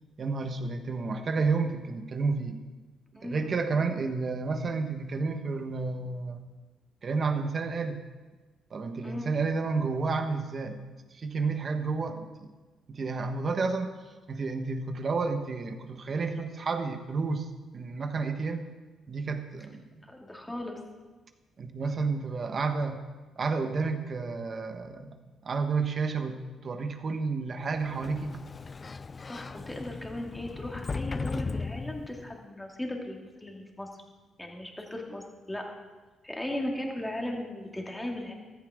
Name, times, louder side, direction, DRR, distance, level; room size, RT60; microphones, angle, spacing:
voice 1, 0.2-2.6 3.2-6.4 7.0-8.0 8.7-10.9 11.2-12.5 12.9-13.9 14.3-17.5 17.7-18.7 19.1-19.8 21.6-23.0 23.4-25.2 25.4-28.4, right 4 dB, 45° right, 7 dB, 1.3 m, -31 dB
voice 2, 3.2-3.7 9.0-9.3 20.1-20.8 29.2-33.9 34.4-35.6 36.2-38.3, left 1 dB, 10° left, 0 dB, 2.3 m, -37 dB
Sliding door, 27.7-32.4, left 4 dB, 30° left, 0.3 m, -37 dB
15.0 x 13.5 x 3.7 m, 1.3 s
cardioid pair, 90°, 0 cm